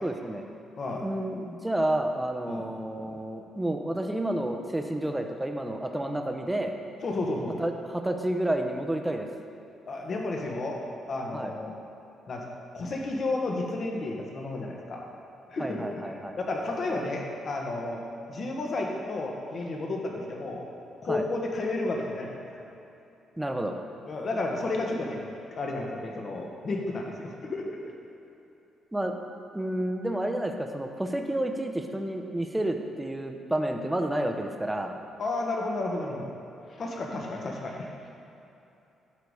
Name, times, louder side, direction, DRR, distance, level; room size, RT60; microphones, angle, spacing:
voice 1, 0.0-0.5 1.0-6.7 7.6-9.3 11.3-11.5 15.6-16.4 21.1-21.3 23.4-23.8 28.9-29.2 29.5-35.0, right 1 dB, 10° right, 4 dB, 0.7 m, -30 dB
voice 2, 0.8-1.1 2.4-2.7 7.0-7.6 9.9-10.8 11.1-11.7 12.3-12.5 12.7-15.1 15.5-18.0 18.3-20.6 21.0-22.3 24.1-25.2 25.5-27.8 35.2-36.3 36.8-37.9, left 2 dB, 50° left, 0 dB, 1.3 m, -32 dB
11.5 x 4.0 x 4.8 m, 2.9 s
cardioid pair, 90°, 0 cm